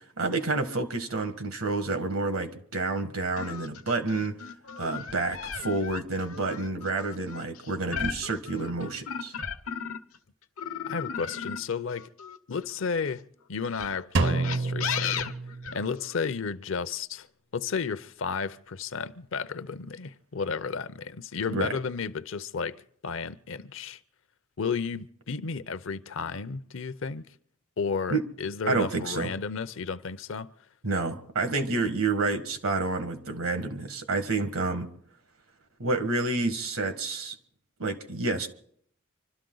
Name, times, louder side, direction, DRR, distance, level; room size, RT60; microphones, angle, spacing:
voice 1, 0.2-4.4 4.8-9.3 21.5-21.7 28.1-28.2 28.7-29.3 30.8-34.9 35.8-37.3 37.8-38.5, right 3 dB, 80° right, 1.6 m, -29 dB
sound 1, 3.4-10.2 10.6-12.9 13.6-16.3, left 7 dB, 90° left, 0.9 m, -36 dB
voice 2, 10.9-12.1 12.5-15.4 15.7-17.3 17.5-24.0 24.6-27.3 27.8-30.5, left 5 dB, 65° left, 0.6 m, -33 dB
Drum, 14.2-16.1, right 3 dB, 60° right, 0.7 m, -28 dB
26.0 x 12.5 x 3.9 m
head